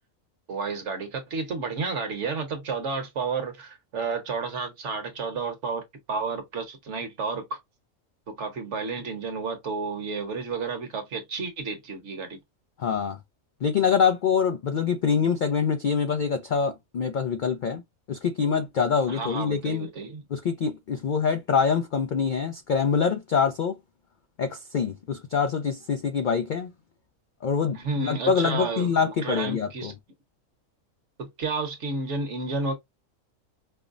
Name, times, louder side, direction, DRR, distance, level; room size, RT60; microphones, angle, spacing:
voice 1, 0.5-5.8 6.1-7.6 8.3-12.4 19.1-20.2 27.7-29.9 31.2-32.7, right 4 dB, 60° right, 1.2 m, -31 dB
voice 2, 12.8-13.2 13.6-17.8 18.1-19.9 20.3-23.8 24.4-26.7 27.4-29.9, left 6 dB, 80° left, 0.4 m, -25 dB
5.3 x 2.0 x 2.5 m
omnidirectional pair, 1.4 m